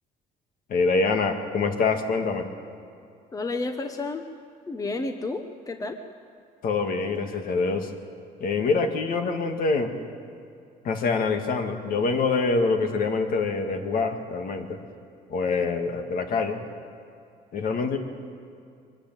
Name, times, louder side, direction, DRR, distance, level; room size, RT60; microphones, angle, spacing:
voice 1, 0.7-2.5 6.6-7.9 8.4-9.9 10.8-14.8 15.3-16.6 17.5-18.0, left 4 dB, 55° left, 5 dB, 2.1 m, -25 dB
voice 2, 3.3-4.3 4.7-6.0, left 3 dB, 20° left, 6 dB, 1.1 m, -31 dB
23.5 x 13.0 x 9.2 m, 2.4 s
cardioid pair, 110°, 17 cm